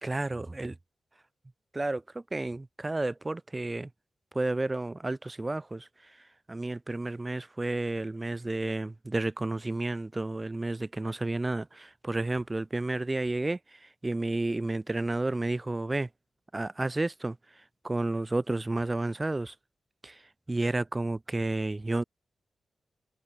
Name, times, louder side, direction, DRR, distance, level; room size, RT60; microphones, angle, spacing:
voice 1, 0.0-0.8 1.7-3.9 4.3-16.1 16.5-19.5 20.0-20.2 20.5-22.0, right 2 dB, 25° right, 0.6 m, -31 dB
cardioid pair, 65°, 0 cm